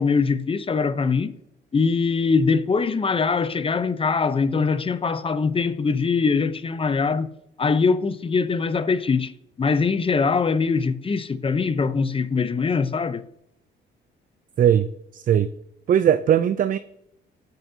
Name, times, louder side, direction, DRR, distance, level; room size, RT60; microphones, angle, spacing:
voice 1, 0.0-1.3 1.7-7.3 7.6-9.3 9.6-13.2, left 4 dB, 25° left, 0.6 m, -22 dB
voice 2, 14.6-15.5 15.9-16.8, right 9 dB, 45° right, 0.4 m, -19 dB
14.5 x 5.3 x 2.7 m
cardioid pair, 90°, 20 cm